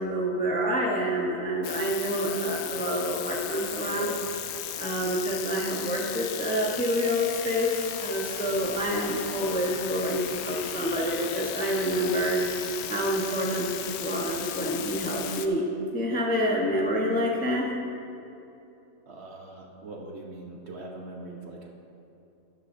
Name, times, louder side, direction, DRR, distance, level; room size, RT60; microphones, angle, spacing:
voice 1, 0.0-4.1 4.8-12.4 12.9-15.7 15.9-17.7, equal, 5° left, -2 dB, 0.9 m, -28 dB
sound 1, 1.6-15.5, left 9 dB, 85° left, 1.1 m, -36 dB
voice 2, 3.8-4.2 12.0-12.5 19.1-21.7, right 2 dB, 50° right, 0 dB, 1.2 m, -41 dB
13.0 x 10.5 x 2.7 m, 2.8 s
omnidirectional pair, 1.5 m